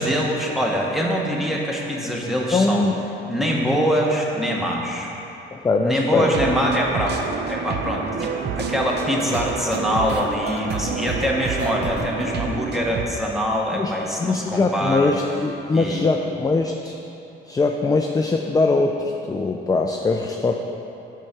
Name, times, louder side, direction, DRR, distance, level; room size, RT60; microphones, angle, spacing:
voice 1, 0.0-2.8 3.3-5.1 5.8-7.2 7.5-15.2 15.7-16.0, equal, ahead, -2 dB, 1.1 m, -24 dB
voice 2, 2.5-3.0 5.5-6.4 13.7-13.9 14.2-16.9 17.5-20.5, left 3 dB, 20° left, 3 dB, 0.4 m, -21 dB
sound 1, 6.3-13.0, right 5 dB, 55° right, 0.6 m, -28 dB
6.0 x 4.7 x 5.8 m, 2.9 s
cardioid pair, 90°, 20 cm